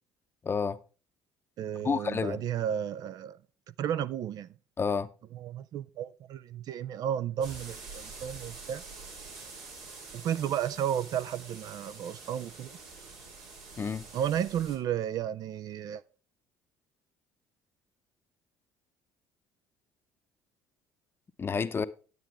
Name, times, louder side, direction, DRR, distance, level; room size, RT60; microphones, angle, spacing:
voice 1, 0.4-0.8 1.8-2.4 4.8-5.1 13.8-14.1 21.4-21.9, left 5 dB, 30° left, 0.7 m, -29 dB
voice 2, 1.6-3.4 3.8-4.5 5.3-8.8 10.1-12.8 14.1-16.0, right 10 dB, 55° right, 0.4 m, -33 dB
sound 1, 7.4-14.8, right 4 dB, 80° right, 3.3 m, -46 dB
9.5 x 9.0 x 3.4 m
supercardioid pair, 80°, 8 cm